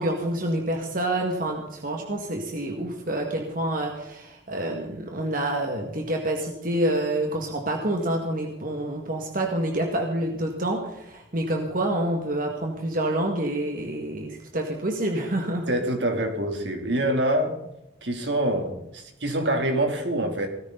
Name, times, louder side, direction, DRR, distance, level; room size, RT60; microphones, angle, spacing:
voice 1, 0.0-15.7, right 1 dB, 50° right, 2 dB, 2.0 m, -27 dB
voice 2, 15.7-17.5 18.0-20.5, right 1 dB, 75° right, 3 dB, 3.2 m, -25 dB
18.0 x 15.0 x 4.0 m, 0.85 s
head